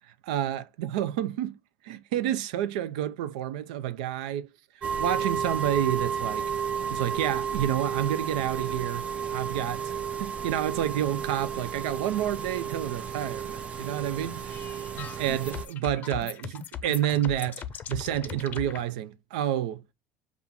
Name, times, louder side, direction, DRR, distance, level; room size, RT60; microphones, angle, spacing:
voice 1, 0.2-1.6 1.8-4.5 5.0-6.5 6.9-9.9 10.2-14.6 15.0-19.8, right 11 dB, 85° right, 0.4 m, -29 dB
sound 1, 4.8-15.7, right 7 dB, 30° right, 0.5 m, -32 dB
sound 2, 14.5-18.8, left 8 dB, 45° left, 0.5 m, -39 dB
5.5 x 2.4 x 3.6 m
supercardioid pair, 95°, 4 cm